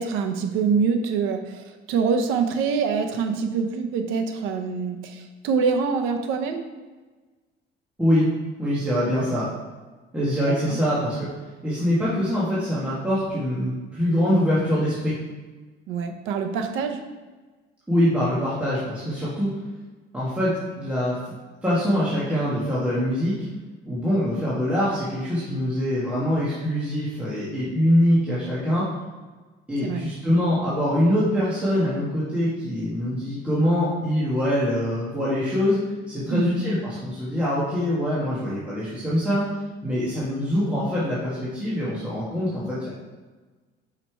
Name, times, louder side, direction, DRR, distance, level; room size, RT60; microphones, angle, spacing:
voice 1, 0.0-6.6 10.5-10.8 15.9-17.0 29.8-30.0 36.3-36.6, right 5 dB, 90° right, 5 dB, 0.8 m, -25 dB
voice 2, 8.6-9.4 10.1-11.3 11.6-15.1 17.9-19.5 20.1-21.2 21.6-23.3 23.9-28.8 29.7-35.8 36.1-39.4 39.8-42.9, equal, 5° right, -10 dB, 1.5 m, -24 dB
5.5 x 4.9 x 4.5 m, 1.3 s
cardioid pair, 150°, 20 cm